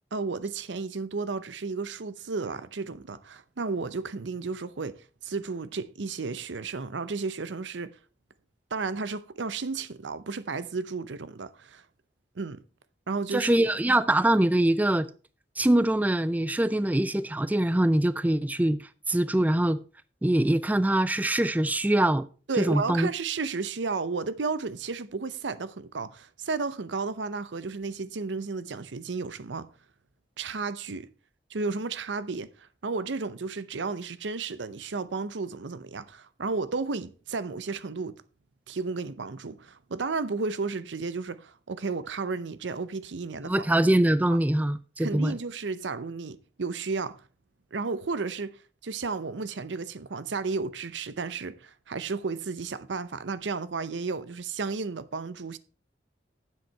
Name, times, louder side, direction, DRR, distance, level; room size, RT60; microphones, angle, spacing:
voice 1, 0.1-8.0 8.7-11.8 12.4-12.6 13.1-13.7 22.5-29.7 30.4-31.1 31.5-38.1 38.7-43.7 44.3-44.4 45.0-47.2 47.7-48.5 48.8-55.6, right 4 dB, 85° right, 0.7 m, -33 dB
voice 2, 13.3-15.1 15.6-18.8 19.1-19.8 20.2-22.3 22.6-23.1 43.4-45.4, right 1 dB, 10° right, 0.3 m, -23 dB
9.1 x 7.7 x 4.5 m
head